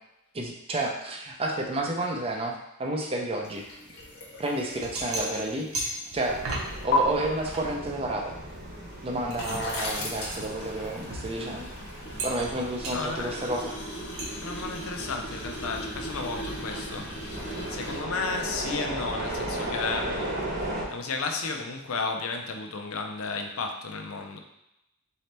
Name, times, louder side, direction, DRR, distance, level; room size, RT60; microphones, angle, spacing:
voice 1, 0.3-3.6 4.4-5.7 6.1-6.4 6.8-8.3 9.0-11.7 12.2-13.7, right 1 dB, 25° right, 1 dB, 0.5 m, -30 dB
sound 1, 3.4-7.0 8.5-18.0, left 2 dB, 55° left, 0.9 m, -37 dB
sound 2, 4.0-4.1 4.6-6.8 7.1-8.6 9.0-11.8 12.2-12.5 12.8-13.0 14.2-14.3, right 2 dB, 70° right, 0.8 m, -36 dB
sound 3, 6.2-20.8, right 1 dB, 45° right, 0.9 m, -37 dB
voice 2, 12.9-13.4 14.4-20.3 20.9-24.4, left 4 dB, 70° left, 4 dB, 0.5 m, -33 dB
4.1 x 2.8 x 3.3 m, 0.86 s
head